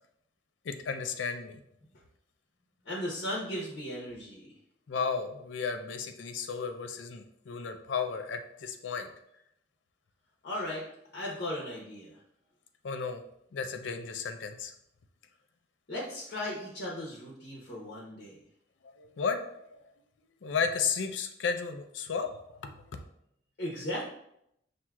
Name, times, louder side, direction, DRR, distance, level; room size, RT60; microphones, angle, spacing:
voice 1, 0.6-1.6 4.9-9.1 12.8-13.2 13.5-14.7 18.8-19.8 20.4-22.7, left 5 dB, 90° left, 7 dB, 0.5 m, -34 dB
voice 2, 2.8-4.5 10.4-10.9 11.1-12.2 15.9-18.4 23.6-24.0, left 1 dB, 60° left, -4 dB, 0.9 m, -36 dB
5.9 x 2.8 x 2.3 m, 0.76 s
head